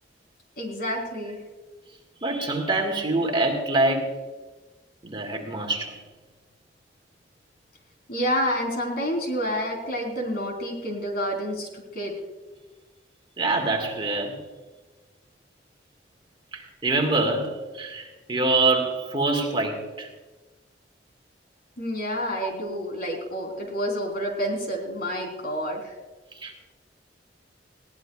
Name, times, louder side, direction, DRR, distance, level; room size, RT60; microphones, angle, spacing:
voice 1, 0.6-1.4 8.1-12.1 21.8-25.9, equal, 60° left, 3.8 m, -29 dB
voice 2, 2.2-4.2 5.0-6.0 13.4-14.4 16.5-20.1 22.4-22.5 26.3-26.7, right 2 dB, 30° right, 1.8 m, -25 dB
20.5 x 17.5 x 2.4 m
head